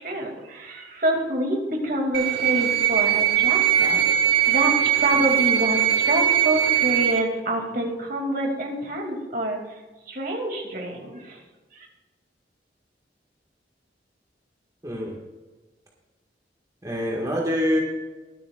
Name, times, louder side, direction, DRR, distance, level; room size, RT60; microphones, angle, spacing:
voice 1, 0.0-9.8 10.1-11.4 11.7-11.9, right 1 dB, 55° right, 1 dB, 2.6 m, -27 dB
sound 1, 2.1-7.2, right 11 dB, 70° right, 1.5 m, -21 dB
voice 2, 14.8-15.1 16.8-17.8, equal, 20° right, -2 dB, 1.8 m, -25 dB
23.5 x 8.6 x 2.5 m, 1.2 s
head